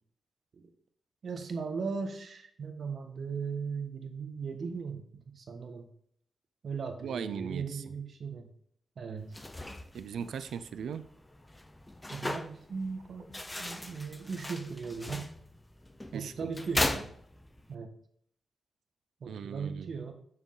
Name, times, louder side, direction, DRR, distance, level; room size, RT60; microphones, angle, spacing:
voice 1, 1.2-5.9 6.6-8.5 9.0-9.4 12.1-13.2 13.6-15.3 16.1-17.1 17.7-17.9 19.2-20.1, right 5 dB, 65° right, 6 dB, 1.3 m, -38 dB
voice 2, 7.0-7.8 9.9-11.1 16.1-16.5 19.3-19.9, right 7 dB, 90° right, 12 dB, 0.5 m, -38 dB
sound 1, 9.2-17.7, left 1 dB, 15° left, 0.7 m, -38 dB
7.1 x 6.5 x 3.9 m, 0.65 s
cardioid pair, 95°, 0 cm